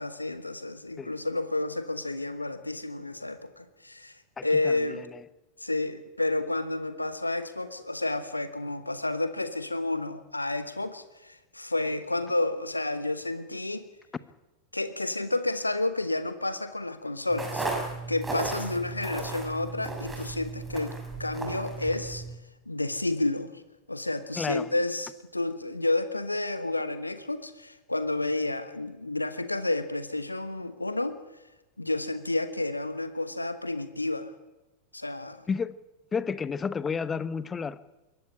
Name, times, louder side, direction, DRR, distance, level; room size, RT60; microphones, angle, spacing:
voice 1, 0.0-4.2 4.4-5.0 5.6-13.8 14.7-17.7 18.1-20.9 21.2-22.2 22.7-23.5 23.9-31.2 31.8-34.3 34.9-35.4, left 2 dB, 85° left, 12 dB, 1.2 m, -30 dB
voice 2, 4.4-5.2 24.4-24.7 35.5-35.8 36.1-37.8, left 5 dB, 20° left, 17 dB, 0.9 m, -31 dB
sound 1, 17.3-22.4, right 3 dB, 10° right, 6.4 m, -35 dB
22.0 x 17.0 x 10.0 m, 1.1 s
figure-of-eight pair, 90°, 0 cm